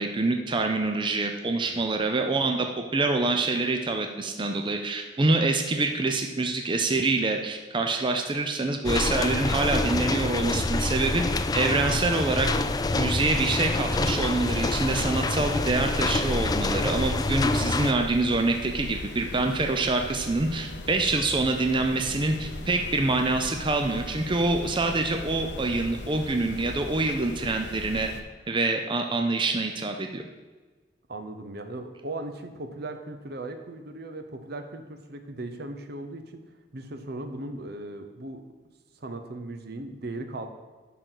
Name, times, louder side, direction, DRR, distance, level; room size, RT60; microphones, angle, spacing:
voice 1, 0.0-12.5 12.9-28.1 28.5-30.2, right 3 dB, 30° right, 4 dB, 0.6 m, -26 dB
sound 1, 8.8-17.9, left 2 dB, 20° left, 0.4 m, -26 dB
sound 2, 14.4-28.2, left 2 dB, 70° left, 0.8 m, -39 dB
voice 2, 31.1-36.4 36.7-38.4 38.9-40.5, right 2 dB, 65° right, 6 dB, 0.9 m, -37 dB
11.0 x 4.0 x 6.3 m, 1.3 s
head